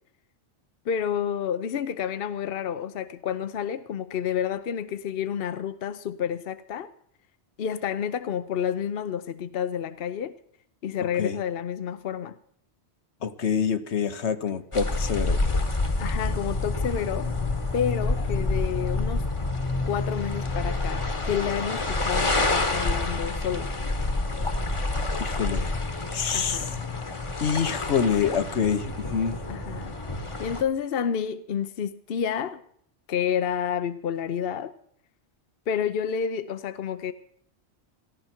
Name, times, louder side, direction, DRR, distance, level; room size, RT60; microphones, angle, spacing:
voice 1, 0.9-6.9 7.6-10.3 10.8-12.3 16.0-17.3 17.7-19.3 19.8-23.7 26.3-26.7 29.5-29.9 30.4-32.6 33.1-34.7 35.7-37.1, left 8 dB, 60° left, 0.9 m, -29 dB
voice 2, 11.0-11.4 13.2-15.4 25.2-25.7 26.1-26.7 27.4-29.4, left 7 dB, 80° left, 1.3 m, -26 dB
sound 1, 14.7-30.6, left 2 dB, 30° left, 1.2 m, -28 dB
17.5 x 14.5 x 4.4 m
omnidirectional pair, 1.1 m